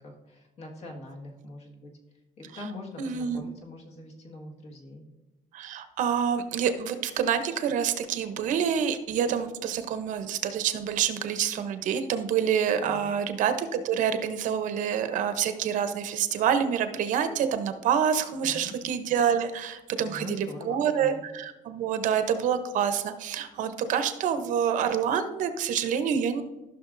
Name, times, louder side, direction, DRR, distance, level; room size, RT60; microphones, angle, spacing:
voice 1, 0.0-1.9 2.4-5.0 12.9-13.1 18.4-18.7 20.0-21.2, left 2 dB, 50° left, 0 dB, 1.6 m, -43 dB
voice 2, 3.0-3.4 5.5-26.4, right 8 dB, 60° right, 9 dB, 0.7 m, -27 dB
14.0 x 6.1 x 2.6 m, 1.1 s
cardioid pair, 155°, 15 cm